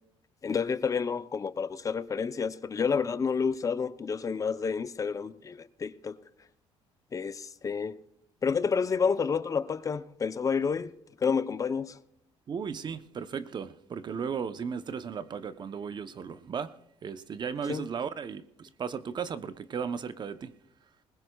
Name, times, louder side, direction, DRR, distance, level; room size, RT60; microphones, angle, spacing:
voice 1, 0.4-6.2 7.1-8.0 8.4-10.9 11.2-12.0 17.7-17.9, left 6 dB, 30° left, 0.6 m, -29 dB
voice 2, 12.5-20.5, right 6 dB, 40° right, 0.7 m, -36 dB
20.5 x 19.5 x 2.3 m
cardioid pair, 105°, 11 cm